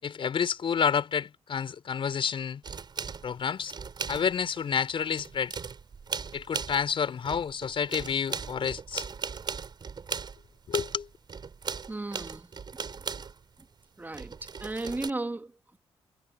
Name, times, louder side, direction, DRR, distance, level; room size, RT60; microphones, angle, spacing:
voice 1, 0.0-2.6 3.2-3.7 4.1-5.6 6.3-9.1 10.7-11.1, left 7 dB, 60° left, 5.2 m, -29 dB
sound 1, 2.6-4.6 4.9-7.0 7.2-13.6 14.1-15.1, right 5 dB, 45° right, 5.3 m, -38 dB
voice 2, 11.9-12.5 12.7-12.9 14.0-15.8, right 2 dB, 20° right, 2.6 m, -35 dB
cardioid pair, 110°, 10 cm